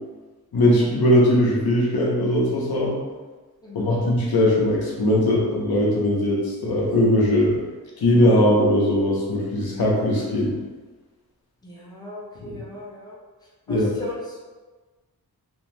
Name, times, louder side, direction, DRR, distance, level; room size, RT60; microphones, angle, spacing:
voice 1, 0.5-3.0 3.7-7.6 8.0-10.6 12.4-12.5 13.7-13.9, left 1 dB, 80° left, -4 dB, 0.7 m, -20 dB
voice 2, 3.6-4.0 11.6-13.2 13.7-14.4, left 1 dB, 10° left, -5 dB, 0.6 m, -37 dB
2.5 x 2.2 x 3.0 m, 1.3 s
wide cardioid pair, 85°, 37 cm